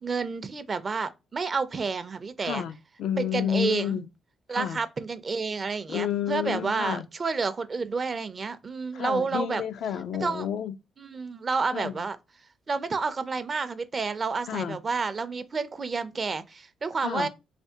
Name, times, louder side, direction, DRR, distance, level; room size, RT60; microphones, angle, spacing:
voice 1, 0.0-2.6 3.2-4.0 4.5-9.6 10.2-10.5 11.0-12.2 12.7-17.3, right 4 dB, 35° right, 0.4 m, -30 dB
voice 2, 2.4-4.1 4.5-4.8 5.9-7.0 8.9-10.7 11.7-12.0 14.5-14.8 17.0-17.3, left 9 dB, 75° left, 0.4 m, -30 dB
3.3 x 2.8 x 2.7 m
cardioid pair, 90°, 0 cm